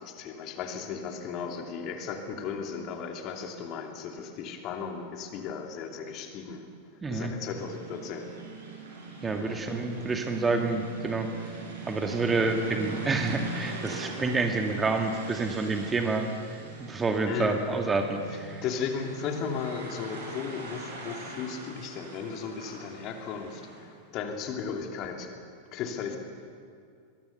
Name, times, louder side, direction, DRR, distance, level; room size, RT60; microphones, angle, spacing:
voice 1, 0.0-6.6 7.1-8.3 9.4-9.6 17.3-17.7 18.3-25.3 25.7-26.2, left 6 dB, 40° left, 3 dB, 2.7 m, -36 dB
voice 2, 7.0-7.3 9.2-11.3 11.8-18.6, right 3 dB, 15° right, 4 dB, 2.1 m, -28 dB
sound 1, 7.5-23.9, right 3 dB, 65° right, 5.9 m, -42 dB
23.5 x 21.0 x 6.9 m, 2.3 s
figure-of-eight pair, 90°, 0 cm